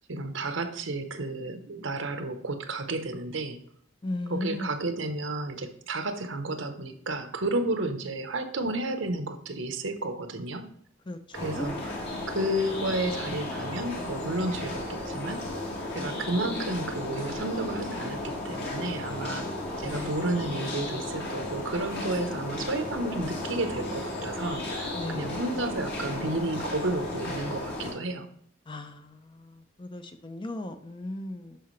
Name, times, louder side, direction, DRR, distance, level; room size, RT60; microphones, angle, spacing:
voice 1, 0.1-3.6 4.3-10.7 11.3-12.0 12.3-15.5 15.9-19.5 19.8-28.3, right 2 dB, 75° right, 0.9 m, -32 dB
voice 2, 4.0-4.7 11.1-11.7 25.0-25.4 28.7-31.6, left 1 dB, 25° left, 0.5 m, -37 dB
sound 1, 11.3-27.9, left 1 dB, 60° left, 2.2 m, -34 dB
11.5 x 4.8 x 3.2 m
head